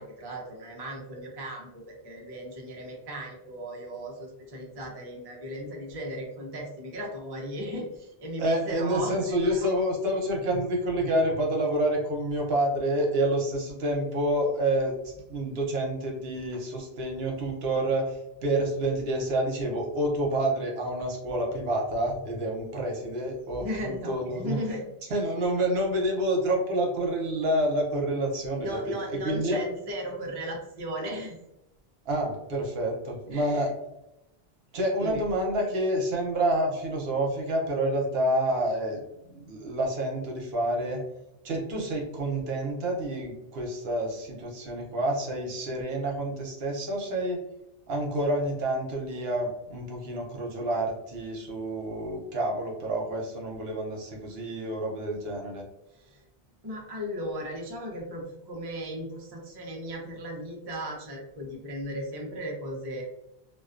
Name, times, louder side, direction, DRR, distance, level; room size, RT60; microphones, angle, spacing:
voice 1, 0.0-9.3 23.6-24.9 25.3-25.4 28.5-31.4 33.3-33.7 35.0-35.2 55.9-56.2 56.6-63.0, equal, 35° right, -1 dB, 0.4 m, -36 dB
voice 2, 8.4-24.6 25.1-29.6 32.1-33.7 34.7-41.0 41.4-47.4 47.9-55.6, right 1 dB, 80° right, -1 dB, 0.9 m, -28 dB
2.3 x 2.2 x 2.4 m, 0.89 s
omnidirectional pair, 1.0 m